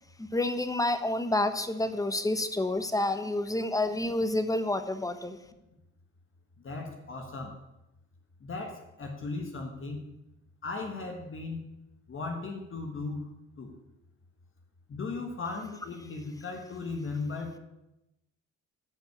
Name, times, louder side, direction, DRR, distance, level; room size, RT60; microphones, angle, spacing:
voice 1, 0.2-5.4, left 1 dB, 10° left, 10 dB, 1.1 m, -29 dB
voice 2, 6.6-7.6 8.4-10.0 10.6-11.7 12.1-13.3 13.6-13.7 14.9-17.6, left 3 dB, 45° left, 3 dB, 1.6 m, -37 dB
11.5 x 5.3 x 8.5 m, 0.92 s
cardioid pair, 90°, 30 cm